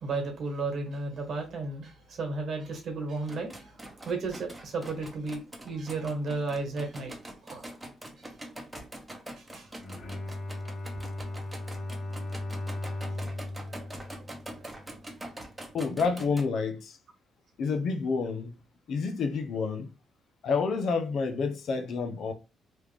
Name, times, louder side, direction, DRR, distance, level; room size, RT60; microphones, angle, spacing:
voice 1, 0.0-3.8 4.0-7.1 7.4-7.7 9.4-9.7 13.7-14.1 14.9-15.1, right 3 dB, 60° right, 1.4 m, -34 dB
sound 1, 3.2-16.4, right 1 dB, 15° right, 0.9 m, -44 dB
Bowed string instrument, 9.7-15.0, left 2 dB, 35° left, 1.5 m, -37 dB
voice 2, 15.7-17.0 17.6-18.6 18.9-19.9 20.4-22.3, left 4 dB, 65° left, 0.7 m, -29 dB
3.1 x 2.4 x 3.5 m
cardioid pair, 90°, 0 cm